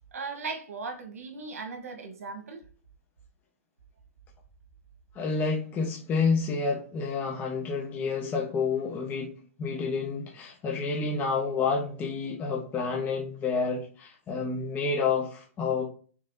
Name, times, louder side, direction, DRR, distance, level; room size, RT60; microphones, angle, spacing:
voice 1, 0.1-2.6, right 4 dB, 85° right, 1.2 m, -37 dB
voice 2, 5.1-9.3 9.6-15.8, left 4 dB, 20° left, 0.9 m, -29 dB
5.3 x 3.4 x 2.6 m
hypercardioid pair, 140°, 8 cm